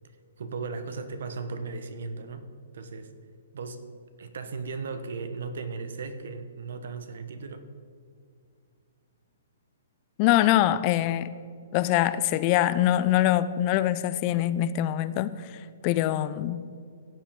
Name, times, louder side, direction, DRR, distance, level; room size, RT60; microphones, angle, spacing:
voice 1, 0.4-2.5 2.7-3.1 3.5-3.8 4.2-7.7, right 4 dB, 70° right, 1.0 m, -36 dB
voice 2, 10.2-11.3 11.7-16.6, left 13 dB, 35° left, 0.3 m, -24 dB
16.5 x 7.4 x 3.7 m
hypercardioid pair, 150°, 0 cm